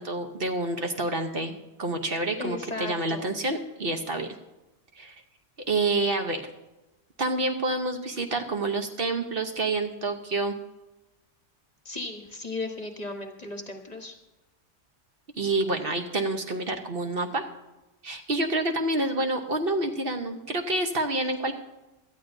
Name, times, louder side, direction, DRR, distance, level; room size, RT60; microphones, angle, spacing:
voice 1, 0.0-4.3 5.0-5.1 5.7-6.4 7.2-10.6 15.4-17.5 18.0-21.5, right 2 dB, 50° right, 5 dB, 1.1 m, -28 dB
voice 2, 2.4-3.3 11.8-14.1, left 2 dB, 35° left, 4 dB, 1.2 m, -36 dB
17.5 x 13.0 x 2.7 m, 1.0 s
omnidirectional pair, 1.3 m